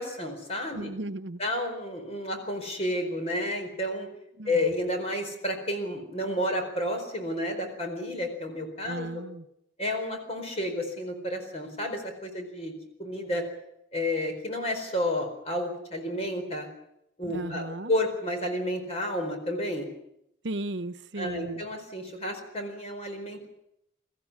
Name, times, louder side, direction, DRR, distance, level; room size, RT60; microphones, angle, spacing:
voice 1, 0.0-0.9 1.4-4.1 4.5-9.2 9.8-13.4 13.9-16.7 17.2-19.9 21.2-23.6, left 1 dB, 35° left, 4.4 m, -31 dB
voice 2, 0.7-1.4 4.4-4.7 8.8-9.5 17.2-17.9 20.4-21.6, right 2 dB, 70° right, 1.0 m, -35 dB
23.5 x 14.5 x 9.7 m
head